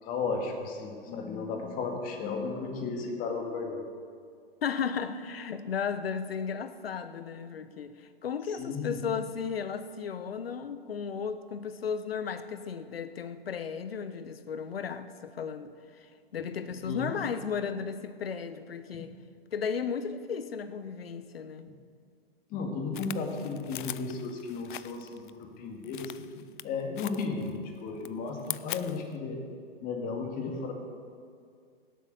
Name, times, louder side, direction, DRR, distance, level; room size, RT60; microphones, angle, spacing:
voice 1, 0.0-3.8 8.5-9.0 16.8-17.2 18.9-19.0 21.7-21.8 22.5-26.1 26.6-29.4 29.8-30.7, left 4 dB, 30° left, 2 dB, 2.1 m, -34 dB
voice 2, 4.6-15.7 16.0-19.1 19.5-21.7, left 6 dB, 75° left, 12 dB, 1.0 m, -35 dB
sound 1, 22.9-25.3 25.8-26.6 27.0-27.6 27.9-29.1, left 12 dB, 55° left, 0.5 m, -41 dB
17.5 x 8.3 x 6.6 m, 2.2 s
hypercardioid pair, 125°, 30 cm